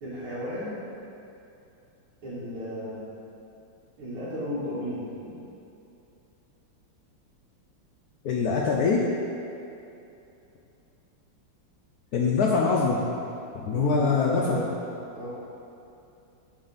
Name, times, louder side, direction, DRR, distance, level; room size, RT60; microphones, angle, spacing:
voice 1, 0.0-0.8 2.2-3.0 4.0-5.4 13.7-14.7 15.1-15.3, left 1 dB, 90° right, -10 dB, 2.3 m, -34 dB
voice 2, 8.2-9.1 12.1-13.1 13.5-14.6, left 4 dB, 80° left, -2 dB, 0.8 m, -23 dB
10.5 x 4.3 x 4.0 m, 2.7 s
omnidirectional pair, 2.3 m